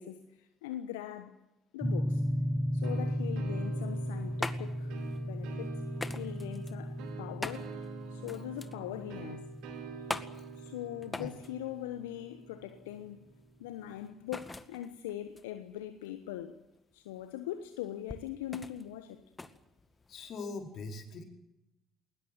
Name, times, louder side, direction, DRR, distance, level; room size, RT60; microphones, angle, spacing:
voice 1, 0.0-1.4 1.7-2.2 2.7-4.9 5.2-5.8 6.2-7.8 8.1-9.5 10.6-13.3 13.6-16.6 16.9-19.2, left 12 dB, 75° left, 1.2 m, -41 dB
sound 1, 1.8-12.0, equal, ahead, 1.2 m, -36 dB
sound 2, 2.8-13.3, right 7 dB, 65° right, 4.6 m, -48 dB
sound 3, 3.9-20.5, left 3 dB, 20° left, 2.0 m, -44 dB
voice 2, 20.1-21.2, left 3 dB, 55° left, 4.9 m, -41 dB
20.5 x 20.0 x 9.1 m
hypercardioid pair, 55°, 0 cm